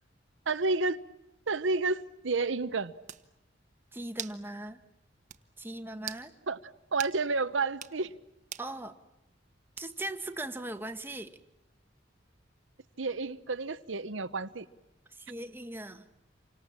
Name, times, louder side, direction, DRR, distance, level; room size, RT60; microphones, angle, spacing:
voice 1, 0.5-1.0 1.5-2.9 6.5-6.6 6.9-8.1 13.0-14.6, right 3 dB, 85° right, 1.0 m, -30 dB
sound 1, 2.6-2.7 3.1-3.3 4.2-4.4 4.8-4.9 5.3-5.4 6.0-6.3 7.0-7.2 7.7-8.0 8.5-8.7 9.8-10.1, right 9 dB, 40° right, 1.3 m, -41 dB
voice 2, 3.9-4.8 5.6-6.3 8.6-9.0 9.8-11.4 15.2-16.1, right 1 dB, 10° right, 1.5 m, -39 dB
29.0 x 25.5 x 7.5 m
head